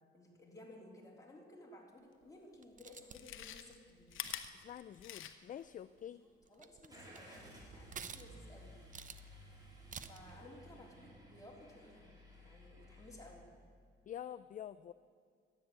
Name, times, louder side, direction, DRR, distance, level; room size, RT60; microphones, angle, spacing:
voice 1, 0.1-4.1 6.5-8.7 10.0-12.1 12.4-13.4, left 1 dB, 15° left, -2 dB, 3.5 m, -56 dB
Chewing mastication, 2.2-2.3 3.0-5.6 6.0-6.1, left 11 dB, 80° left, 0.9 m, -46 dB
sound 1, 2.6-3.4 4.1-4.6 6.0-6.1 6.4-7.3 7.9-8.5 8.9-9.3 9.9-10.3, right 7 dB, 40° right, 0.7 m, -50 dB
voice 2, 4.6-6.2 14.1-14.9, left 10 dB, 40° left, 14 dB, 0.4 m, -47 dB
Car / Engine starting, 6.9-13.3, equal, 20° right, 4.1 m, -56 dB
13.0 x 9.7 x 7.6 m, 2.2 s
cardioid pair, 90°, 20 cm